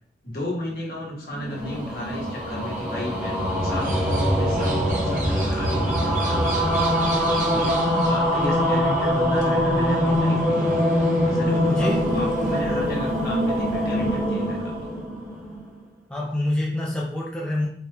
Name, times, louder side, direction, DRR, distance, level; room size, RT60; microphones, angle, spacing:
voice 1, 0.2-7.8 8.0-14.7, left 1 dB, 55° left, -3 dB, 1.2 m, -34 dB
sound 1, 1.3-15.7, equal, 10° right, 0.9 m, -23 dB
sound 2, 3.7-12.6, right 2 dB, 45° right, 0.7 m, -37 dB
voice 2, 11.7-12.2 16.1-17.7, left 1 dB, 5° left, -4 dB, 0.4 m, -26 dB
4.2 x 2.3 x 3.3 m, 0.63 s
head